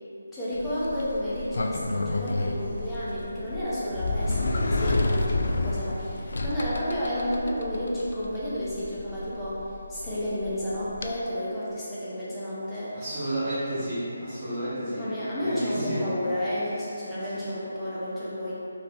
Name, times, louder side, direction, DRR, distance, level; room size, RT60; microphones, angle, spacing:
voice 1, 0.3-13.0 15.0-18.5, equal, 5° left, -12 dB, 0.7 m, -31 dB
Sliding door, 0.5-11.1, left 2 dB, 60° left, 0.4 m, -30 dB
voice 2, 12.9-15.0 15.4-16.1, right 1 dB, 10° right, -16 dB, 1.3 m, -31 dB
5.3 x 3.2 x 2.6 m, 2.8 s
hypercardioid pair, 175°, 0 cm